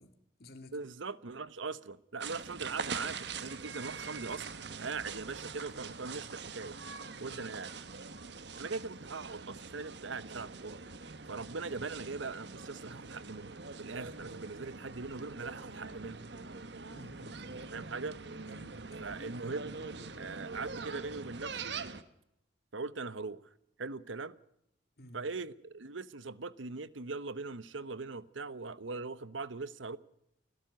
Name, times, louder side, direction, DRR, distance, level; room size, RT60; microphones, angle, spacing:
voice 1, 0.0-0.8 7.3-7.5 16.9-17.8 18.6-18.8 25.0-25.2, left 1 dB, 55° left, 2.5 m, -53 dB
voice 2, 0.7-4.5 4.8-6.8 7.2-7.7 8.6-10.8 11.3-16.2 17.7-18.2 19.0-19.7 20.2-21.7 22.7-23.4 23.8-24.4 25.1-30.0, right 4 dB, 90° right, 1.0 m, -41 dB
sound 1, 2.2-22.0, right 4 dB, 65° right, 1.3 m, -44 dB
29.5 x 12.0 x 9.3 m
head